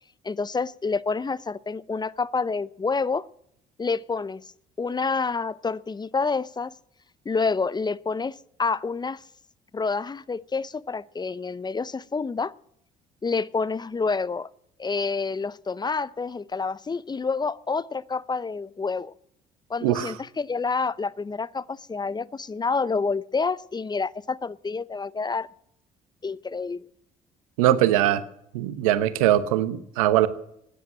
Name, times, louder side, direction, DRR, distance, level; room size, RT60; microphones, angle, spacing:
voice 1, 0.2-3.3 3.8-4.4 4.8-6.7 7.2-9.2 9.7-12.5 13.2-14.5 14.8-19.1 19.7-25.5 26.2-26.8, left 4 dB, 25° left, 0.7 m, -28 dB
voice 2, 19.8-20.1 27.6-28.2 28.5-30.3, right 13 dB, 90° right, 1.0 m, -21 dB
15.0 x 10.0 x 8.8 m
hypercardioid pair, 60°, 17 cm